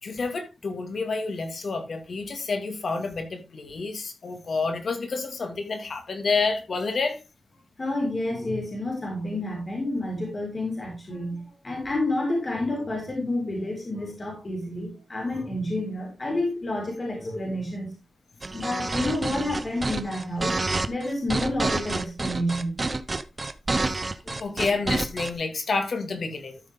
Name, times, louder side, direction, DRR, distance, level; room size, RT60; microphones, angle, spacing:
voice 1, 0.0-7.2 24.4-26.6, left 4 dB, 65° left, 2.1 m, -29 dB
voice 2, 7.8-17.9 18.5-20.6 20.9-22.9 24.2-24.4, left 1 dB, 35° left, 4.3 m, -29 dB
sound 1, 18.4-25.3, right 3 dB, 30° right, 0.8 m, -28 dB
13.0 x 5.9 x 3.6 m
wide cardioid pair, 135°, 0 cm